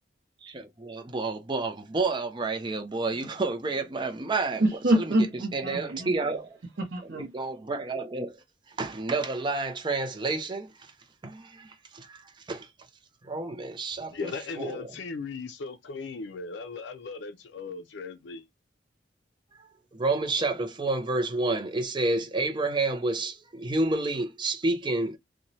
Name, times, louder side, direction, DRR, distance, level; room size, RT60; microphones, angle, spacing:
voice 1, 0.4-4.6 4.9-5.0 5.5-6.6 7.1-8.3 8.8-10.7 11.2-11.7 11.9-12.2 12.5-12.7 13.3-14.9 19.9-25.2, right 3 dB, 25° right, 0.5 m, -29 dB
voice 2, 4.6-6.1 6.8-7.3, right 1 dB, 80° right, 0.6 m, -26 dB
voice 3, 14.1-18.4, left 4 dB, 85° left, 0.4 m, -37 dB
2.9 x 2.1 x 2.6 m
head